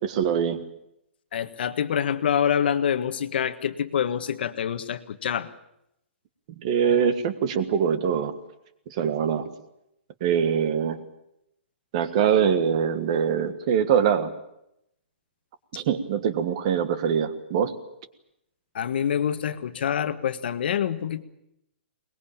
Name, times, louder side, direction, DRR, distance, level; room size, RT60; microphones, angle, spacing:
voice 1, 0.0-0.6 6.6-8.3 8.9-9.5 10.2-11.0 11.9-14.3 15.7-17.7, right 7 dB, 30° right, 12 dB, 1.6 m, -23 dB
voice 2, 1.3-5.5 18.7-21.2, left 8 dB, 55° left, 11 dB, 1.5 m, -26 dB
23.0 x 21.0 x 8.8 m, 0.81 s
hypercardioid pair, 175°, 7 cm